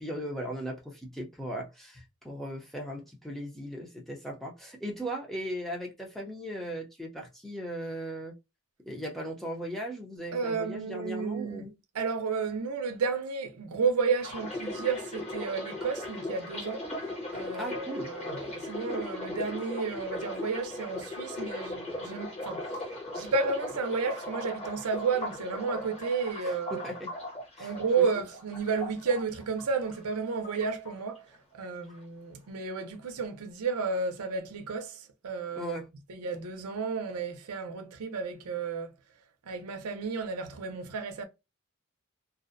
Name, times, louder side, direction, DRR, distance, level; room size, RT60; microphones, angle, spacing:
voice 1, 0.0-8.3 8.9-11.7 17.6-18.1 26.4-27.1 27.6-28.1 35.6-35.9, equal, ahead, 0.5 m, -38 dB
voice 2, 10.3-11.7 11.9-16.9 17.3-22.7 23.1-26.8 27.6-31.3 31.5-35.8 36.1-38.9 39.5-41.3, right 5 dB, 85° right, 0.5 m, -32 dB
sound 1, 14.2-30.2 30.4-31.4 31.6-32.0, left 1 dB, 30° left, 0.9 m, -38 dB
2.4 x 2.0 x 2.5 m
head